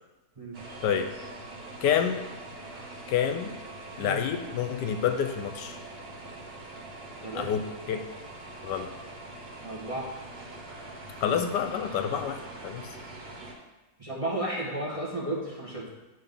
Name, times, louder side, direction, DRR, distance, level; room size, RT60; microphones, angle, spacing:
voice 1, 0.4-0.7 4.0-4.2 7.2-7.5 9.6-10.1 14.0-15.9, right 1 dB, 20° right, -5 dB, 1.2 m, -33 dB
sound 1, 0.5-13.5, right 2 dB, 75° right, 1.9 m, -43 dB
voice 2, 1.8-2.2 3.1-3.5 4.0-5.8 7.3-8.0 8.6-8.9 11.2-12.9, left 8 dB, 80° left, 7 dB, 1.2 m, -28 dB
9.0 x 3.7 x 5.3 m, 1.1 s
omnidirectional pair, 1.9 m